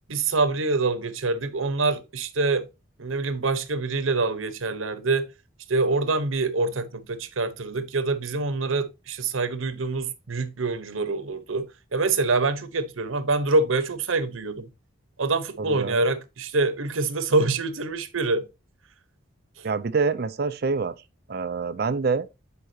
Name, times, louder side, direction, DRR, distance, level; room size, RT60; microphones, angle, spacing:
voice 1, 0.1-2.7 3.0-5.3 5.7-11.7 11.9-14.7 15.2-18.5, right 3 dB, 85° right, 0.9 m, -25 dB
voice 2, 15.6-16.0 19.6-20.9 21.3-22.3, right 4 dB, 50° right, 0.4 m, -26 dB
9.6 x 4.8 x 2.7 m
head